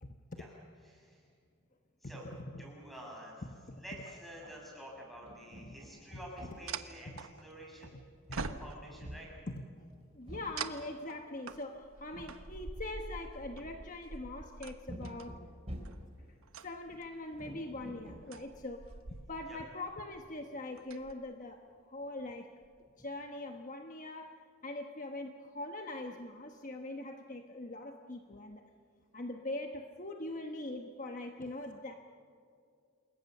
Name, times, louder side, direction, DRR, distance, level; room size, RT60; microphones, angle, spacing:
voice 1, 0.0-0.4 2.4-2.6 3.4-3.8 4.4-4.5 5.6-5.8 6.1-6.2 7.1-7.2 7.8-8.0 8.3-8.5 9.5-9.9 10.1-15.4 16.6-22.5 23.0-28.6 29.1-31.9, left 2 dB, 40° left, 4 dB, 1.2 m, -43 dB
voice 2, 0.9-1.2 2.0-2.3 2.6-3.4 3.8-8.0 8.3-9.3 19.5-19.6, equal, ahead, -2 dB, 7.1 m, -49 dB
sound 1, 4.4-4.6 4.9-6.7 7.7-9.4 9.9-10.9 11.5-11.6 12.1-12.5 13.6-13.8 14.9-16.2 17.3-18.2 19.9-20.2 20.5-20.7 21.5-21.6 22.0-22.1 22.6-22.7, equal, 30° right, 3.8 m, -49 dB
sound 2, 5.6-5.7 6.7-7.9 8.3-9.1 10.6-15.3 15.8-16.1 16.4-17.2 17.8-19.6 19.8-20.2 20.7-21.1, right 4 dB, 90° right, 1.1 m, -45 dB
28.5 x 22.0 x 6.8 m, 2.3 s
head